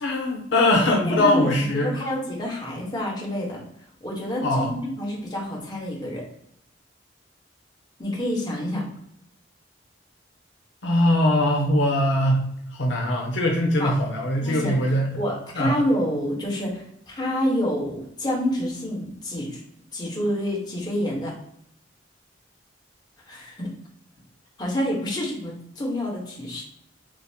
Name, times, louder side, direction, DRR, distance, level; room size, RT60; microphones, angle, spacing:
voice 1, 0.0-1.9 4.4-4.7 10.8-12.4 12.8-15.1 15.6-15.8, left 1 dB, 90° left, 0 dB, 0.7 m, -21 dB
voice 2, 1.0-1.5 1.8-3.6 4.0-6.2 8.0-8.8 13.8-14.0 14.4-14.8 15.2-19.6 19.9-21.3 23.3-23.7 24.6-26.6, equal, 25° left, -4 dB, 1.1 m, -27 dB
5.0 x 2.1 x 2.8 m, 0.73 s
head